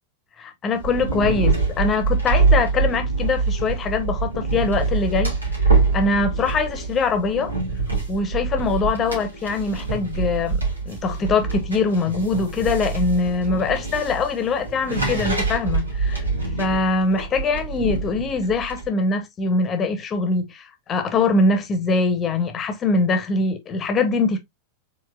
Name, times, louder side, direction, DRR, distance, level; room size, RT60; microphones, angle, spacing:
voice 1, 0.4-5.3 5.6-7.5 8.1-16.2 16.6-24.4, left 3 dB, 25° left, 1.1 m, -23 dB
sound 1, 0.7-18.9, right 4 dB, 80° right, 2.1 m, -24 dB
4.6 x 3.9 x 2.4 m
figure-of-eight pair, 90°, 0 cm